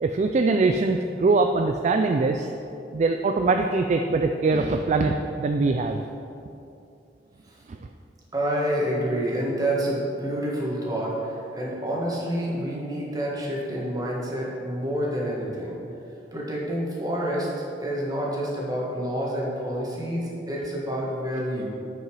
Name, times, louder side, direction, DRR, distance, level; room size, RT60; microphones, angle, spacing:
voice 1, 0.0-2.5 2.9-6.0 7.7-7.8, right 3 dB, 40° right, 5 dB, 0.3 m, -22 dB
voice 2, 8.3-15.7 16.3-17.5 17.8-21.6, equal, 20° right, -4 dB, 1.6 m, -28 dB
9.6 x 5.5 x 4.7 m, 2.7 s
head